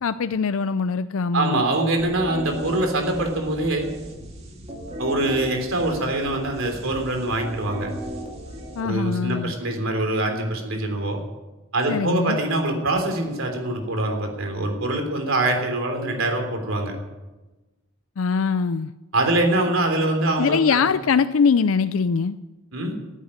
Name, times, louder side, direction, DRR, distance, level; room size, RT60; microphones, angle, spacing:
voice 1, 0.0-1.6 8.8-9.5 11.9-12.4 18.2-18.9 20.4-22.4, left 5 dB, 75° left, 12 dB, 0.5 m, -22 dB
voice 2, 1.3-3.9 5.0-7.9 8.8-11.2 11.7-17.0 19.1-20.9 22.7-22.9, right 2 dB, 75° right, 3 dB, 3.4 m, -24 dB
sound 1, 2.0-9.6, equal, 30° right, 2.3 m, -36 dB
15.0 x 8.3 x 9.9 m, 1.1 s
head